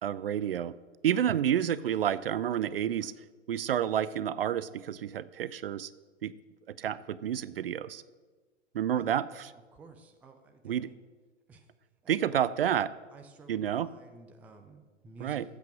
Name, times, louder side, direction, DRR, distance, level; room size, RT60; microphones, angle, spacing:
voice 1, 0.0-0.7 1.0-5.9 6.2-6.3 6.7-8.0 8.7-9.5 10.6-10.9 12.1-12.9 13.5-13.9 15.2-15.4, right 10 dB, 50° right, 17 dB, 0.5 m, -30 dB
voice 2, 9.7-11.0 11.5-11.7 12.0-12.4 13.1-15.4, right 3 dB, 5° right, 5 dB, 0.4 m, -52 dB
13.5 x 8.4 x 6.1 m, 1.3 s
figure-of-eight pair, 120°, 37 cm